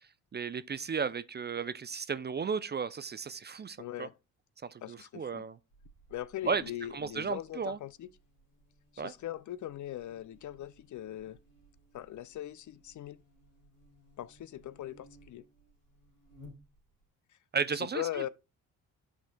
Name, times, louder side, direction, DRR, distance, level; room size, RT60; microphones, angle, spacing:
voice 1, 0.3-4.1 4.7-5.6 6.4-6.6 6.9-7.8 9.0-9.1 17.5-18.0, right 5 dB, 25° right, 0.4 m, -34 dB
voice 2, 3.8-4.1 4.8-5.4 6.1-8.1 8.9-11.4 11.9-13.2 14.2-15.5 17.8-18.3, left 12 dB, 50° left, 0.4 m, -40 dB
Buzz, 5.7-17.1, left 1 dB, 85° left, 2.3 m, -60 dB
10.5 x 4.4 x 2.2 m
supercardioid pair, 50°, 40 cm